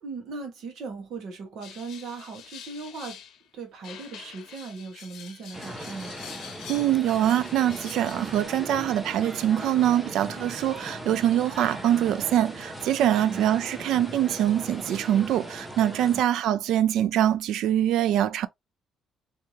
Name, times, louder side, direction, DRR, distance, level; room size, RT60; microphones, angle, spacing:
voice 1, 0.0-3.2 3.5-6.2 12.9-13.4 16.0-16.2, right 4 dB, 60° right, 1.4 m, -38 dB
sound 1, 1.6-3.4 3.8-8.4, left 8 dB, 70° left, 0.8 m, -45 dB
sound 2, 5.5-16.2, right 1 dB, 10° right, 0.6 m, -39 dB
voice 2, 6.7-18.5, right 11 dB, 75° right, 0.3 m, -24 dB
3.4 x 2.8 x 2.9 m
cardioid pair, 155°, 0 cm